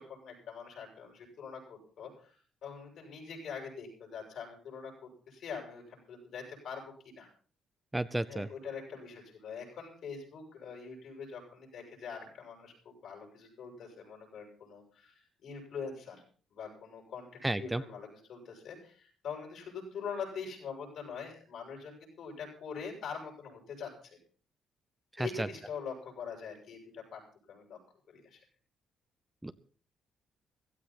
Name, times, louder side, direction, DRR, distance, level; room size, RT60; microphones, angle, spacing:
voice 1, 0.0-7.3 8.3-16.2 16.5-24.2 25.2-27.2 27.5-27.8 28.1-28.4, left 6 dB, 70° left, 1 dB, 7.4 m, -44 dB
voice 2, 7.9-8.5 17.4-17.8 25.2-25.5 29.4-29.5, right 1 dB, 10° right, 13 dB, 0.7 m, -32 dB
16.5 x 14.5 x 4.2 m, 0.42 s
cardioid pair, 90°, 0 cm